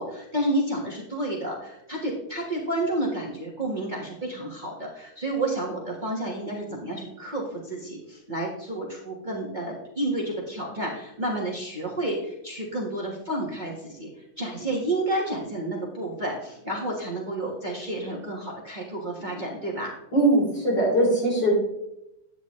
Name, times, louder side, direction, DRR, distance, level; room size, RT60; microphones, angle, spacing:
voice 1, 0.0-20.0, right 1 dB, 25° right, -2 dB, 1.5 m, -30 dB
voice 2, 20.1-21.5, right 1 dB, 65° left, -4 dB, 4.5 m, -21 dB
10.0 x 8.9 x 3.2 m, 0.86 s
omnidirectional pair, 2.1 m